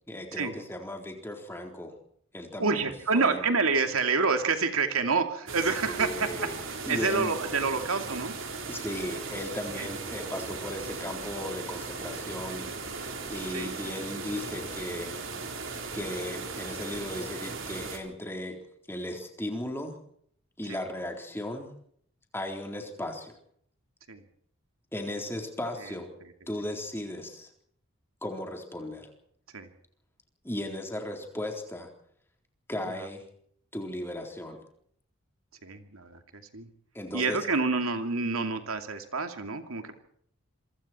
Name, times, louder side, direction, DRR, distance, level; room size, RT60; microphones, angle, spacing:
voice 1, 0.1-2.0 2.3-3.4 5.9-6.6 6.9-7.4 8.7-12.7 13.3-15.1 15.9-18.6 18.9-20.0 20.6-21.7 22.3-23.4 24.9-26.1 26.5-27.5 28.2-29.1 30.4-31.9 32.7-33.2 33.7-34.6 36.9-37.4, left 1 dB, 10° left, 2 dB, 3.8 m, -36 dB
voice 2, 2.6-8.3 9.8-9.9 13.5-13.7 20.7-20.8 24.1-24.2 26.2-26.3 29.5-29.7 32.9-33.0 35.6-36.7 37.1-40.0, right 4 dB, 80° right, 6 dB, 2.5 m, -28 dB
sound 1, 5.5-18.0, right 4 dB, 60° right, 4.0 m, -37 dB
26.5 x 24.5 x 4.5 m, 0.66 s
head